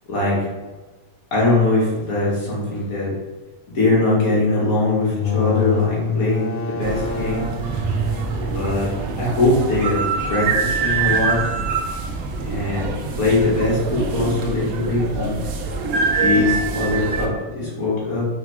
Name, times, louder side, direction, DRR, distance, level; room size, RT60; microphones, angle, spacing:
voice 1, 1.3-3.1 3.7-7.5 8.5-8.9 9.2-11.4 12.4-15.4 16.2-18.3, left 2 dB, 80° left, -5 dB, 2.1 m, -21 dB
sound 1, 5.0-10.6, left 3 dB, 55° left, 0.7 m, -27 dB
sound 2, 6.8-17.3, right 4 dB, 85° right, 1.2 m, -24 dB
4.9 x 4.3 x 4.7 m, 1.3 s
omnidirectional pair, 1.5 m